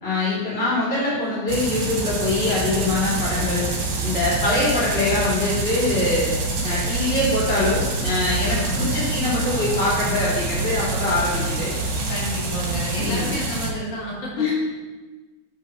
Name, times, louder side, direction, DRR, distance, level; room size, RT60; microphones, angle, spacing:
voice 1, 0.0-3.7 4.0-6.3 6.6-11.7 12.9-13.3 14.3-14.5, left 2 dB, 20° left, -7 dB, 2.7 m, -23 dB
sound 1, 1.5-13.7, right 3 dB, 55° right, 1.9 m, -26 dB
voice 2, 8.5-8.9 12.1-14.4, equal, 80° left, -5 dB, 3.4 m, -30 dB
8.4 x 5.7 x 4.5 m, 1.3 s
omnidirectional pair, 3.4 m